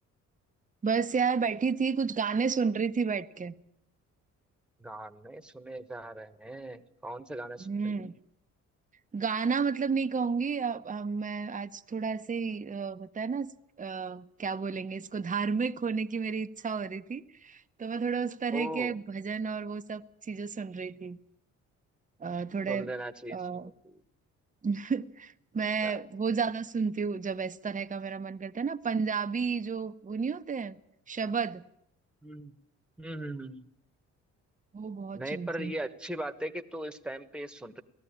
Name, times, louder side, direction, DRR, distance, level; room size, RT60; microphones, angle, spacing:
voice 1, 0.8-3.5 7.6-8.1 9.1-13.5 13.8-21.2 22.2-22.9 23.3-23.7 24.6-30.8 31.1-31.6 34.7-35.7, right 5 dB, 25° right, 0.9 m, -31 dB
voice 2, 4.8-8.0 18.5-19.0 22.7-24.0 25.8-25.9 32.2-32.5 33.0-33.7 35.1-37.8, right 1 dB, 5° right, 1.3 m, -39 dB
18.5 x 14.0 x 10.0 m
cardioid pair, 90°, 30 cm